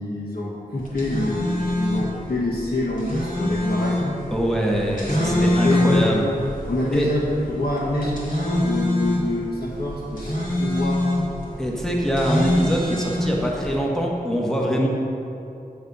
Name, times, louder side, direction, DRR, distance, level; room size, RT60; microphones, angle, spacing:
voice 1, 0.0-4.2 5.1-6.3 6.7-11.0, left 1 dB, 80° left, -6 dB, 1.4 m, -26 dB
sound 1, 0.8-13.8, left 1 dB, 60° left, 1.5 m, -25 dB
voice 2, 4.3-6.3 6.9-7.1 11.6-14.9, equal, 5° left, -2 dB, 1.0 m, -23 dB
7.2 x 3.4 x 5.4 m, 2.8 s
wide cardioid pair, 45°, 16 cm